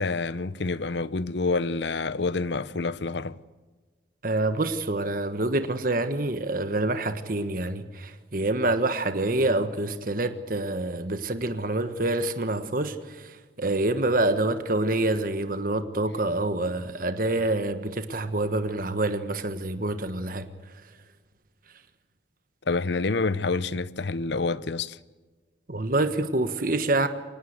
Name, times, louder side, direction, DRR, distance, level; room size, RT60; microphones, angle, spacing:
voice 1, 0.0-3.4 22.7-25.0, left 3 dB, 70° left, 0.8 m, -27 dB
voice 2, 4.2-20.5 25.7-27.1, right 2 dB, 50° right, 1.4 m, -27 dB
24.0 x 19.0 x 8.1 m
head